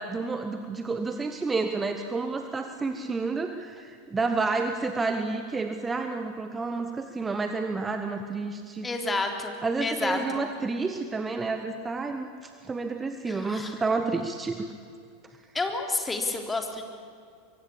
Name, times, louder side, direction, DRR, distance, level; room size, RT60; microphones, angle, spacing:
voice 1, 0.0-8.9 9.6-14.7, right 3 dB, 15° right, 6 dB, 1.5 m, -30 dB
voice 2, 8.8-9.5 9.8-10.2 13.3-13.7 15.5-16.8, left 3 dB, 15° left, 4 dB, 3.6 m, -29 dB
24.5 x 23.5 x 8.6 m, 2.3 s
figure-of-eight pair, 85°, 0 cm